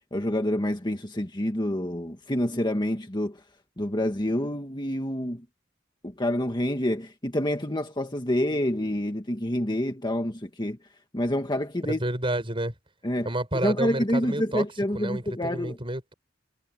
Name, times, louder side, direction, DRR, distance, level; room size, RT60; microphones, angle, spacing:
voice 1, 0.1-3.4 3.8-5.4 6.0-10.8 11.1-12.0 13.0-13.3 13.5-15.8, left 1 dB, 25° left, 1.7 m, -27 dB
voice 2, 11.9-12.7 13.2-14.7 14.9-16.1, right 1 dB, 30° right, 7.2 m, -30 dB
head